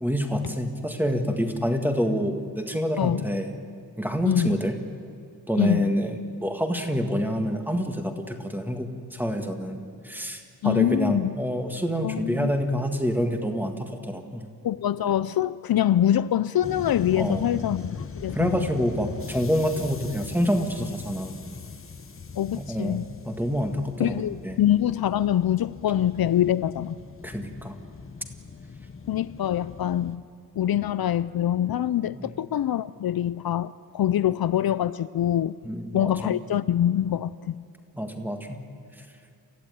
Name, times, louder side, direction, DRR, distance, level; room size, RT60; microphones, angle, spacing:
voice 1, 0.0-3.5 4.0-4.8 5.5-14.5 17.2-17.6 18.3-21.4 22.6-24.6 27.2-27.8 32.1-32.3 35.6-36.4 37.9-38.6, equal, 5° right, 1.8 m, -27 dB
voice 2, 4.2-4.6 5.6-5.9 10.6-11.4 12.0-12.5 14.6-18.6 22.4-23.0 24.0-27.0 29.1-30.2 30.6-35.5 35.9-37.5, left 11 dB, 70° left, 0.5 m, -24 dB
sound 1, 16.6-30.2, left 5 dB, 35° left, 1.1 m, -40 dB
29.5 x 15.0 x 9.4 m
wide cardioid pair, 155°, 38 cm